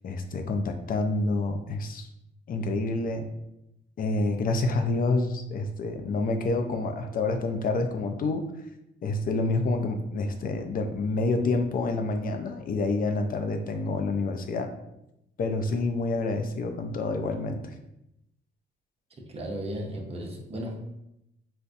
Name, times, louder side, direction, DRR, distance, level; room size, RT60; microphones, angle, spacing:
voice 1, 0.0-2.1 2.5-3.3 4.0-8.4 9.0-14.7 15.4-17.6, left 3 dB, 45° left, 6 dB, 0.4 m, -28 dB
voice 2, 19.2-20.8, equal, 30° right, -1 dB, 0.7 m, -35 dB
3.9 x 2.2 x 2.5 m, 0.85 s
cardioid pair, 90°, 20 cm